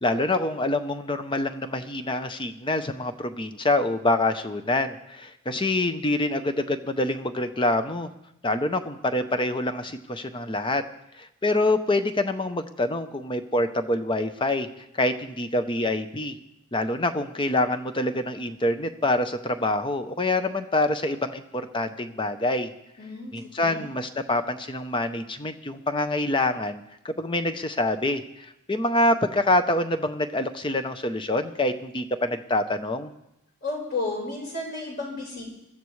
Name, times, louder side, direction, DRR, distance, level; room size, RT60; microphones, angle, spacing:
voice 1, 0.0-8.1 8.4-10.8 11.2-14.7 15.0-16.3 16.7-22.7 23.3-33.1, left 2 dB, 20° left, 9 dB, 0.6 m, -26 dB
voice 2, 23.0-23.8 33.6-35.4, left 3 dB, 45° left, -2 dB, 4.8 m, -32 dB
21.0 x 13.5 x 3.2 m, 0.85 s
head